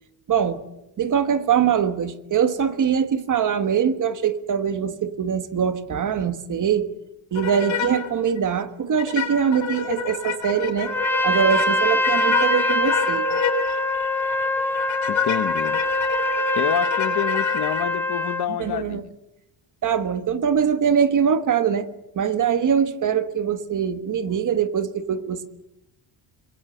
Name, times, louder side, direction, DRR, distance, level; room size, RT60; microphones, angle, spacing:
voice 1, 0.3-0.6 1.0-6.9 7.3-10.9 11.2-13.3 18.6-19.0 19.8-21.9 22.1-25.5, right 7 dB, 40° right, 1.4 m, -22 dB
sound 1, 7.3-8.1 8.4-8.5 9.0-17.8, left 7 dB, 70° left, 4.5 m, -29 dB
Trumpet, 10.9-18.5, left 1 dB, 5° left, 2.0 m, -23 dB
voice 2, 15.1-15.8 16.5-19.1, left 12 dB, 55° left, 1.1 m, -27 dB
27.0 x 22.0 x 7.9 m
cardioid pair, 175°, 48 cm